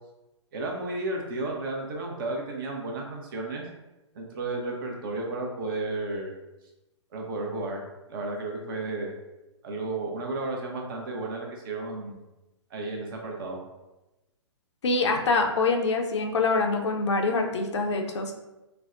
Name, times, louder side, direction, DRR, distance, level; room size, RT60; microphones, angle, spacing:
voice 1, 0.5-3.6 4.1-6.3 7.1-7.8 8.1-9.1 9.6-12.3 12.7-13.6, right 2 dB, 45° right, 0 dB, 0.8 m, -33 dB
voice 2, 14.8-18.3, left 3 dB, 70° left, 3 dB, 0.5 m, -25 dB
4.3 x 2.2 x 2.5 m, 1.0 s
figure-of-eight pair, 120°, 16 cm